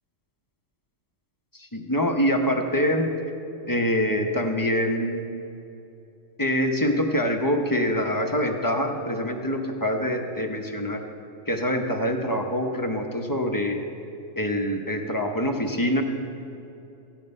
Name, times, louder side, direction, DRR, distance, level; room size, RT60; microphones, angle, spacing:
voice 1, 1.5-3.1 3.7-5.3 6.4-11.0 11.5-13.8 14.4-16.0, equal, 20° left, 3 dB, 0.7 m, -25 dB
14.0 x 9.3 x 5.4 m, 2.8 s
omnidirectional pair, 1.3 m